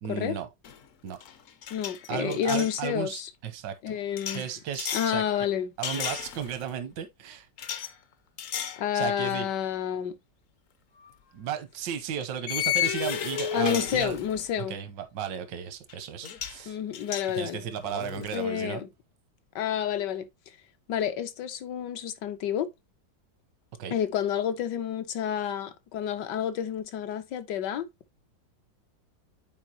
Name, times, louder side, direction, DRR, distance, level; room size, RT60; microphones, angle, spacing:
voice 1, 0.0-0.5 1.0-1.2 2.1-4.0 4.3-5.2 5.8-7.5 8.9-9.5 11.3-14.2 14.7-16.8 17.3-18.8 23.8-23.9, right 8 dB, 80° right, 1.5 m, -34 dB
sound 1, 0.6-2.8 4.2-5.2 5.8-6.7 7.6-7.9 8.4-8.8 9.3-9.5 11.0-11.1 12.5-14.5 15.9-16.0 16.2-16.6 16.9-18.4, left 10 dB, 60° left, 0.9 m, -33 dB
voice 2, 1.7-3.3 3.8-4.4 4.9-5.7 8.8-10.2 13.5-14.8 16.7-17.7 18.3-18.9 19.5-20.3 20.9-22.7 23.9-27.9, left 9 dB, 75° left, 1.4 m, -29 dB
9.4 x 4.4 x 2.8 m
omnidirectional pair, 1.9 m